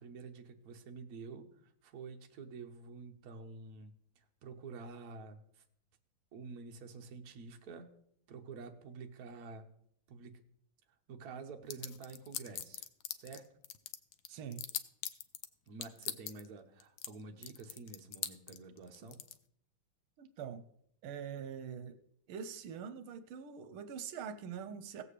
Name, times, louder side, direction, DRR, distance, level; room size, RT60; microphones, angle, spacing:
voice 1, 0.0-5.6 6.3-7.9 8.3-9.7 10.1-10.4 11.1-12.9 13.2-13.5 15.7-19.2, right 4 dB, 55° right, 4 dB, 1.2 m, -49 dB
sound 1, 11.7-13.4 13.6-15.5 15.8-16.5 16.8-17.1 17.4-19.4, left 11 dB, 80° left, 1.4 m, -39 dB
voice 2, 14.3-14.6 20.2-20.6 21.0-22.0 22.3-25.0, right 7 dB, 85° right, 10 dB, 1.6 m, -44 dB
17.5 x 7.5 x 3.2 m, 0.68 s
omnidirectional pair, 2.3 m